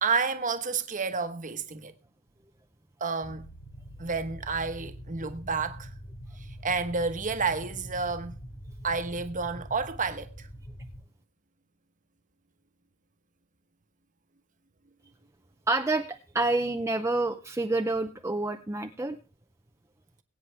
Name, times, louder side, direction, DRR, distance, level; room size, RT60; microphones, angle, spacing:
voice 1, 0.0-1.9 3.0-3.5 4.0-5.9 6.4-8.4 8.8-10.5, right 4 dB, 35° right, 1.1 m, -30 dB
sound 1, 3.2-11.0, equal, 50° left, 6.9 m, -44 dB
voice 2, 15.7-19.2, right 2 dB, 15° right, 0.6 m, -28 dB
21.5 x 8.8 x 3.4 m
head